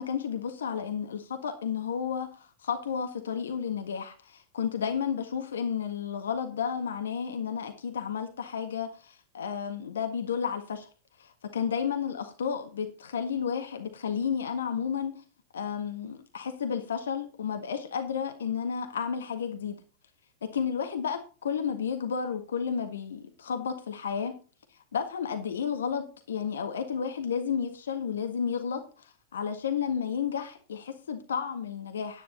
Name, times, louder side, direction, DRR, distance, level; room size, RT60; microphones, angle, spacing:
voice 1, 0.0-10.9 11.2-15.2 15.5-19.7 20.5-24.3 24.9-32.2, left 7 dB, 65° left, 6 dB, 1.6 m, -32 dB
10.0 x 10.0 x 4.0 m, 0.35 s
figure-of-eight pair, 90°, 0 cm